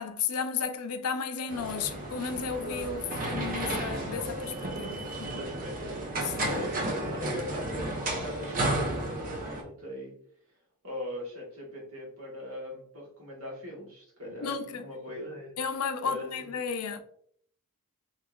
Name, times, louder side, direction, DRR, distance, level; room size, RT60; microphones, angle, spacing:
voice 1, 0.0-5.4 6.2-6.6 14.4-14.8 15.6-17.0, left 6 dB, 80° left, 0.4 m, -33 dB
sound 1, 1.5-9.6, right 1 dB, 40° right, 0.7 m, -33 dB
voice 2, 5.2-6.0 6.5-6.8 7.1-10.1 10.8-15.5 16.0-16.5, left 1 dB, 65° right, 1.3 m, -41 dB
3.5 x 2.9 x 2.3 m
head